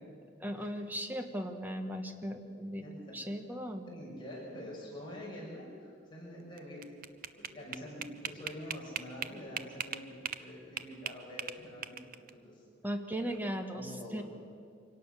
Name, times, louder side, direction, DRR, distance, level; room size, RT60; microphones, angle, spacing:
voice 1, 0.4-2.8 3.1-4.0 12.8-14.2, equal, 10° right, 6 dB, 1.3 m, -37 dB
voice 2, 2.8-3.1 3.9-7.0 7.3-12.6 13.2-13.4 13.7-14.2, left 1 dB, 25° left, -4 dB, 6.1 m, -46 dB
sound 1, 6.6-10.5 10.8-12.3, right 8 dB, 45° right, 0.7 m, -39 dB
25.0 x 17.5 x 6.8 m, 2.2 s
head